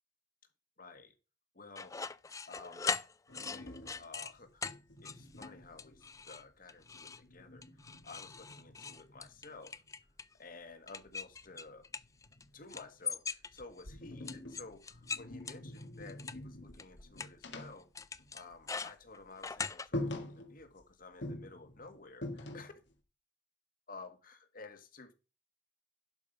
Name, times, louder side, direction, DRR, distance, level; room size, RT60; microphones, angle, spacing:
voice 1, 0.8-1.1 1.5-2.0 2.5-2.9 3.4-9.8 10.4-11.9 12.5-17.9 18.3-22.8 23.9-25.1, left 3 dB, 55° left, 1.7 m, -53 dB
sound 1, 1.8-4.3 4.6-4.8 5.0-5.5 5.8-6.4 6.7-7.2 7.6-10.3 10.9-12.4 12.7-13.8 14.3-16.3 16.8-16.9 17.2-17.3 18.0-19.9, left 5 dB, 20° left, 0.4 m, -40 dB
sound 2, 3.3-6.4 6.7-9.7 11.0-13.0 13.5-18.8 19.0-19.2 19.6-19.7 19.9-20.8 21.2-22.9, left 1 dB, 85° left, 1.8 m, -46 dB
11.5 x 5.2 x 5.3 m
head